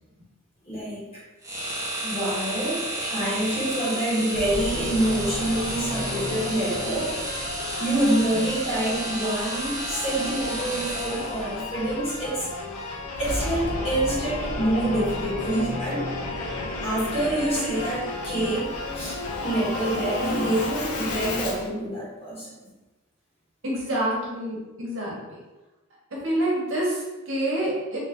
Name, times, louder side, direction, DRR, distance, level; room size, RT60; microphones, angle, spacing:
voice 1, 0.6-1.2 2.0-7.1 7.7-12.5 13.2-16.1 16.8-22.5, right 1 dB, 30° left, -7 dB, 1.2 m, -27 dB
sound 1, 1.4-11.5, right 1 dB, 15° right, 0.6 m, -32 dB
Singing / Musical instrument, 4.3-21.7, left 2 dB, 85° left, 0.6 m, -32 dB
voice 2, 23.6-25.4 26.1-28.0, right 1 dB, 60° right, -5 dB, 1.1 m, -27 dB
3.2 x 2.5 x 3.5 m, 1.1 s
head